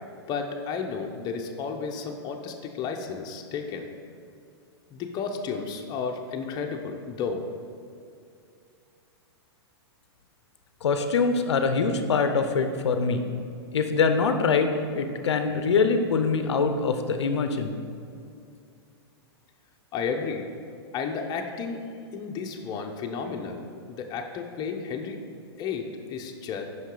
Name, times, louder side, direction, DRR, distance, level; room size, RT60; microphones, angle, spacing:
voice 1, 0.3-3.9 4.9-7.5 19.9-20.5 20.9-21.8 22.1-25.2 25.6-26.7, left 5 dB, 30° left, 3 dB, 0.6 m, -32 dB
voice 2, 10.8-13.2 13.7-17.8, left 4 dB, 90° left, 7 dB, 0.5 m, -24 dB
5.6 x 5.3 x 3.8 m, 2.4 s
hypercardioid pair, 120°, 14 cm